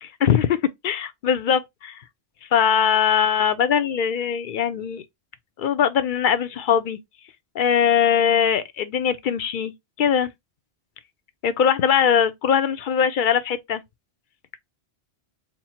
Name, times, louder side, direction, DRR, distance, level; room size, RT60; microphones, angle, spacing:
voice 1, 0.0-0.6 0.8-2.0 2.5-5.0 5.6-7.0 7.5-9.7 10.0-10.3 11.4-13.8, left 8 dB, 60° left, 0.6 m, -21 dB
4.4 x 2.0 x 4.2 m
omnidirectional pair, 1.1 m